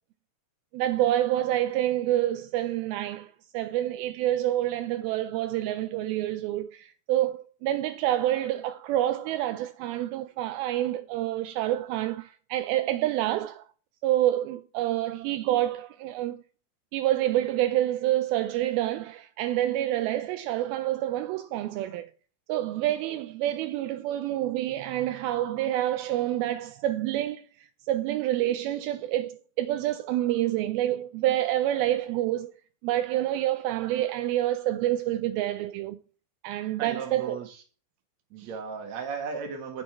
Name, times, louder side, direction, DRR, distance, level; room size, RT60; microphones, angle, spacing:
voice 1, 0.7-13.6 14.0-16.4 16.9-22.1 22.5-27.4 27.9-32.5 32.8-36.0 36.4-37.4 38.4-38.5, right 13 dB, 85° right, 2.4 m, -27 dB
voice 2, 36.8-37.6 38.3-39.8, right 5 dB, 55° right, 2.8 m, -36 dB
8.5 x 6.6 x 4.4 m
omnidirectional pair, 4.3 m